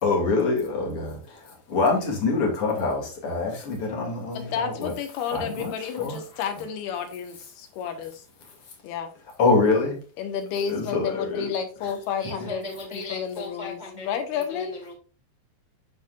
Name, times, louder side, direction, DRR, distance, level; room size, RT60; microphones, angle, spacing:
voice 1, 0.0-4.9 5.3-6.2 6.5-6.6 9.4-10.0 10.7-11.5 11.8-11.9 12.4-12.5, left 3 dB, 40° left, 0 dB, 2.9 m, -25 dB
voice 2, 4.3-8.2 8.8-9.1 10.2-12.6 12.9-14.7, left 7 dB, 85° left, 7 dB, 3.2 m, -31 dB
voice 3, 12.2-14.9, left 2 dB, 90° right, -1 dB, 0.4 m, -38 dB
12.0 x 4.6 x 2.4 m, 0.37 s
omnidirectional pair, 4.4 m